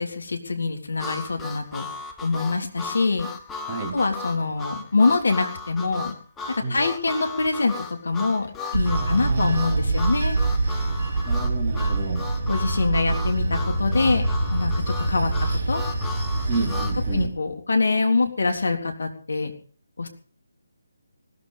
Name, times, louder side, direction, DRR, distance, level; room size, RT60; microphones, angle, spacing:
voice 1, 0.0-1.9 2.2-3.3 3.9-6.1 6.5-10.4 12.5-15.3 15.7-15.8 17.1-19.5 20.0-20.1, left 3 dB, 55° left, 4 dB, 3.6 m, -24 dB
Harmonica, 1.0-17.0, left 3 dB, 5° left, 1.2 m, -36 dB
voice 2, 3.6-4.0 6.6-6.8 8.9-10.0 11.3-12.3 16.5-17.3, right 3 dB, 20° right, 1 dB, 3.0 m, -30 dB
Bell / Train, 8.7-17.3, right 2 dB, 35° right, 3.3 m, -25 dB
19.5 x 13.5 x 5.5 m, 0.42 s
figure-of-eight pair, 150°, 0 cm